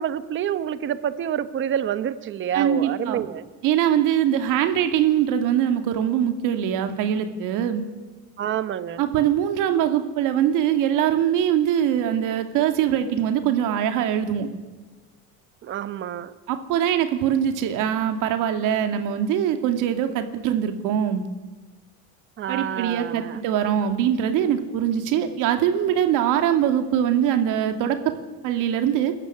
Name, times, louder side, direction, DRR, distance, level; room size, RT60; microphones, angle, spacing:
voice 1, 0.0-3.4 8.4-9.0 15.6-16.3 22.4-23.4, right 10 dB, 35° right, 12 dB, 1.2 m, -28 dB
voice 2, 2.5-3.2 3.6-7.8 9.0-14.5 16.5-21.3 22.5-28.1 28.4-29.1, right 10 dB, 70° right, 7 dB, 2.5 m, -22 dB
28.0 x 14.0 x 9.9 m, 1.2 s
cardioid pair, 165°, 33 cm